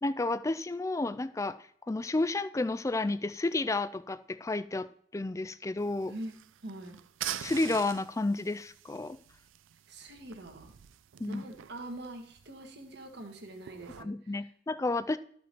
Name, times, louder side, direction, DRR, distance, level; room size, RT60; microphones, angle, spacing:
voice 1, 0.0-1.6 1.9-4.9 5.1-6.1 7.4-9.2 11.2-11.4 14.0-15.2, left 2 dB, 15° left, 13 dB, 0.3 m, -31 dB
sound 1, 5.8-14.0, right 11 dB, 85° right, 0.4 m, -45 dB
voice 2, 6.6-7.0 9.9-10.7 11.2-14.5, right 1 dB, 55° right, 4 dB, 1.5 m, -44 dB
13.0 x 5.1 x 4.5 m, 0.62 s
head